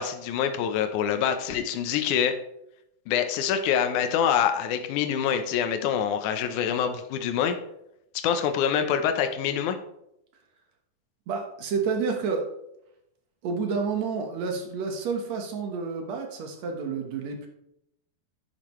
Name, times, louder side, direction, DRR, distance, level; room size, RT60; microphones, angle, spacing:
voice 1, 0.0-2.4 3.1-7.6 8.1-9.8, left 8 dB, 75° left, 7 dB, 1.9 m, -25 dB
voice 2, 11.3-12.5 13.4-17.5, right 5 dB, 60° right, 3 dB, 2.1 m, -29 dB
10.0 x 8.9 x 3.1 m, 0.81 s
omnidirectional pair, 4.2 m